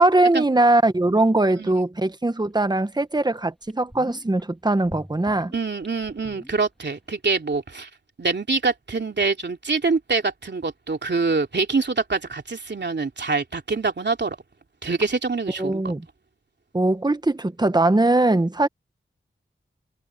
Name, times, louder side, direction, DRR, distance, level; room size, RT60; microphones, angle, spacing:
voice 1, 0.0-5.5 15.6-16.0 16.7-18.7, right 2 dB, 20° right, 1.2 m, -20 dB
sound 1, 2.6-2.7 3.2-3.3 3.6-4.4 4.8-7.1 7.4-7.5, equal, ahead, 2.4 m, -44 dB
voice 2, 5.5-7.9 8.2-14.4 14.8-15.9, right 4 dB, 60° right, 3.0 m, -25 dB
open air
wide cardioid pair, 65°, 21 cm